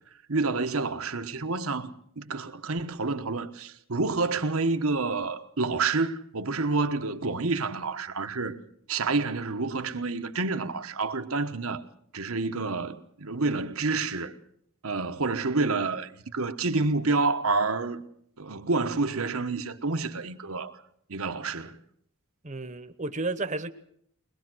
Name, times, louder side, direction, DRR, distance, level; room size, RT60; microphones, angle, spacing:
voice 1, 0.3-8.6 8.9-11.8 12.1-14.4 14.8-18.1 18.4-20.8 21.1-21.8, right 3 dB, 75° right, 1.3 m, -28 dB
voice 2, 22.4-23.7, right 3 dB, 35° right, 1.1 m, -32 dB
22.0 x 21.0 x 6.3 m
head